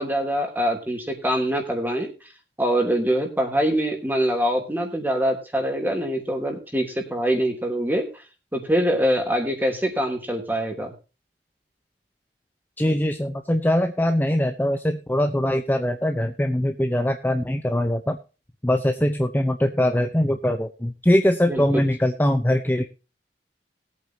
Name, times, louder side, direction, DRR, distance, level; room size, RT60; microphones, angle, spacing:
voice 1, 0.0-2.1 2.6-8.1 8.5-10.9 21.5-21.8, equal, 10° right, 3 dB, 3.1 m, -24 dB
voice 2, 12.8-18.2 18.6-22.8, left 1 dB, 10° left, 6 dB, 0.8 m, -22 dB
20.0 x 8.7 x 2.9 m, 0.32 s
head